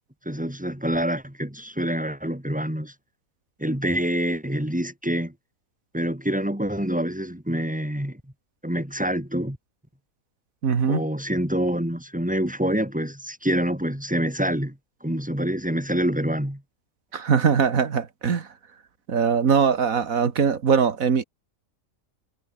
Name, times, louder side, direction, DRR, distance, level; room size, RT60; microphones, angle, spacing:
voice 1, 0.3-2.9 3.6-5.3 5.9-8.2 8.6-9.6 10.9-16.6 17.3-17.4, equal, 5° right, 4.4 m, -26 dB
voice 2, 10.6-11.0 17.1-18.5 19.1-21.2, right 6 dB, 85° right, 2.1 m, -21 dB
omnidirectional pair, 1.4 m